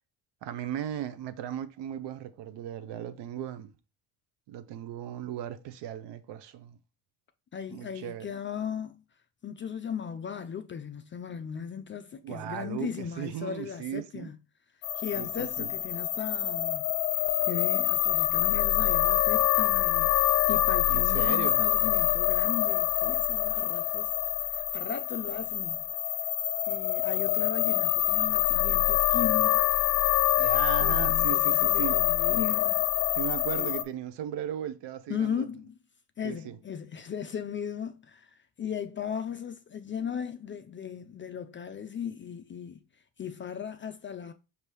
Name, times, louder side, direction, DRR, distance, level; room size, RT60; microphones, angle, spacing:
voice 1, 0.4-3.7 4.5-6.8 7.7-8.3 12.2-14.3 15.1-15.7 20.9-21.7 30.4-32.0 33.1-35.5 36.2-36.6, right 10 dB, 60° right, 0.7 m, -37 dB
voice 2, 7.5-9.0 9.4-14.4 15.0-16.8 17.4-24.1 24.4-25.8 26.6-29.6 30.8-32.9 33.6-33.7 35.1-35.7 36.2-42.8 43.2-44.3, left 8 dB, 25° left, 0.4 m, -37 dB
sound 1, 14.8-33.8, left 13 dB, 75° left, 0.6 m, -26 dB
5.2 x 2.7 x 3.2 m
hypercardioid pair, 65°, 47 cm